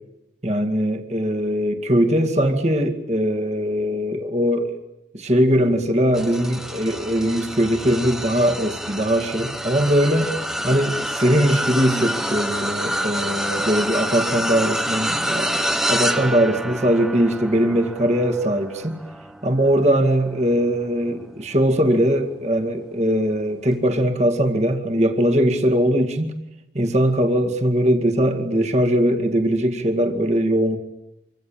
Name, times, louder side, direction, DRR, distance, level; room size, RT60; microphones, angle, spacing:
voice 1, 0.4-4.8 5.1-10.4 10.6-15.6 15.9-19.0 19.4-26.3 26.7-30.8, equal, 40° right, 5 dB, 2.2 m, -20 dB
sound 1, 6.1-21.7 22.2-22.4 23.7-23.8, equal, 5° right, 1.0 m, -28 dB
26.5 x 25.0 x 8.8 m, 0.91 s
head